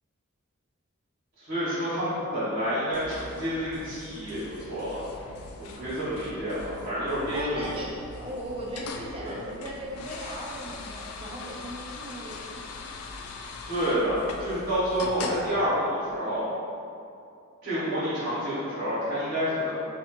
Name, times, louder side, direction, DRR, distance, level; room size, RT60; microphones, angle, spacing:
voice 1, 1.4-5.0 5.6-7.8 9.2-9.4 13.7-16.4 17.6-19.7, equal, 50° right, -12 dB, 1.0 m, -29 dB
sound 1, 2.9-15.5, left 3 dB, 85° left, 0.3 m, -41 dB
voice 2, 7.3-12.8, right 1 dB, 25° right, -4 dB, 0.5 m, -38 dB
3.5 x 2.6 x 3.6 m, 2.5 s
head